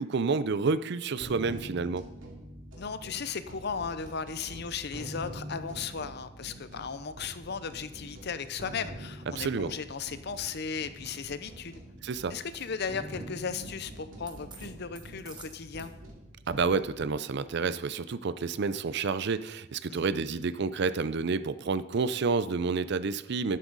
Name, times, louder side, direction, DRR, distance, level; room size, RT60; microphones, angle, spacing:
voice 1, 0.0-2.1 9.3-9.7 12.0-12.4 16.5-23.6, right 4 dB, 60° right, 15 dB, 0.5 m, -29 dB
sound 1, 1.2-17.0, right 1 dB, 90° right, 2.5 m, -45 dB
voice 2, 2.8-11.8 12.3-15.9 19.9-20.1, left 6 dB, 60° left, 12 dB, 0.7 m, -36 dB
sound 2, 11.0-11.1 12.1-12.2 12.5-12.7 14.3-15.9, right 5 dB, 25° right, 1.3 m, -50 dB
11.5 x 11.0 x 4.0 m, 0.96 s
head